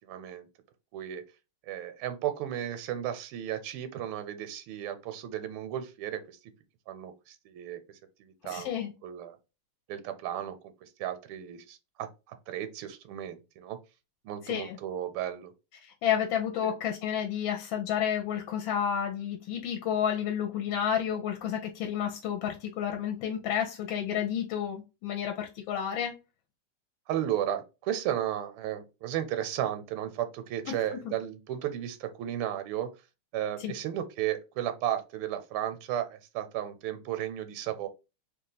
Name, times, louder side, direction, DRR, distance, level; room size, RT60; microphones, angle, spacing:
voice 1, 0.1-0.5 0.9-1.2 1.7-6.4 6.9-7.8 8.2-9.4 9.9-13.8 14.2-15.5 16.6-16.7 27.1-32.9 33.3-37.9, right 11 dB, 80° right, 1.4 m, -34 dB
voice 2, 8.4-8.9 14.4-14.8 15.8-26.2 30.7-30.8 33.6-33.7, left 9 dB, 75° left, 1.3 m, -31 dB
3.2 x 2.4 x 3.9 m
omnidirectional pair, 2.4 m